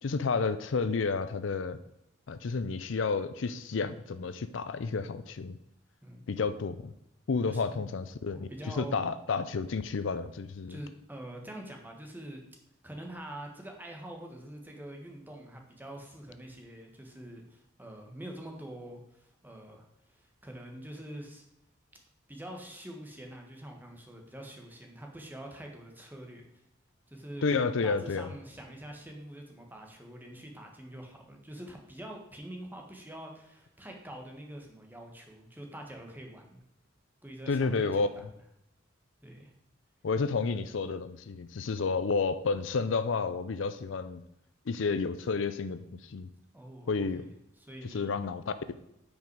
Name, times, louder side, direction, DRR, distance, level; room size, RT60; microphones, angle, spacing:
voice 1, 0.0-1.8 2.3-5.6 6.3-6.9 7.3-8.5 8.8-10.8 27.4-28.3 37.5-38.1 40.0-44.2 44.7-46.3 46.9-47.2 47.9-48.7, left 4 dB, 70° left, 12 dB, 0.5 m, -31 dB
voice 2, 7.5-7.9 8.3-8.9 10.7-12.4 12.8-21.4 22.3-26.4 27.1-36.6 37.2-38.3 39.2-39.5 46.5-47.3 47.6-48.2, right 1 dB, 10° right, 2 dB, 1.5 m, -45 dB
9.0 x 5.4 x 4.7 m, 0.84 s
head